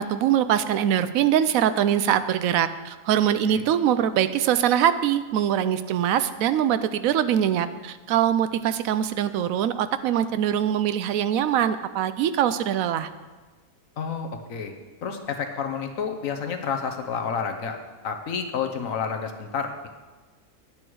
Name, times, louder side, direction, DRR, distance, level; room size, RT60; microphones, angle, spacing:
voice 1, 0.0-13.1, right 10 dB, 70° right, 13 dB, 0.9 m, -23 dB
voice 2, 14.0-14.7 15.0-17.8 18.0-19.9, left 6 dB, 60° left, 5 dB, 1.2 m, -30 dB
10.5 x 8.7 x 4.6 m, 1.3 s
omnidirectional pair, 1.7 m